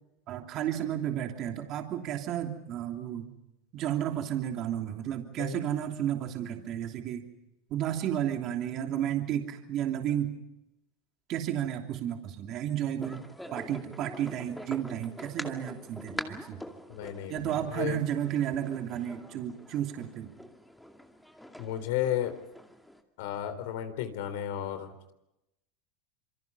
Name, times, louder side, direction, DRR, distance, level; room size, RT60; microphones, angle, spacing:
voice 1, 0.3-3.2 3.7-7.2 7.7-10.3 11.3-13.2 13.5-16.6 17.3-20.3, right 10 dB, 45° right, 3 dB, 3.0 m, -32 dB
sound 1, 13.0-23.0, left 1 dB, 5° left, 2.4 m, -44 dB
voice 2, 16.9-18.0 21.6-22.4 23.2-25.1, left 11 dB, 75° left, 10 dB, 3.9 m, -33 dB
27.5 x 24.0 x 5.6 m, 0.89 s
supercardioid pair, 120°, 0 cm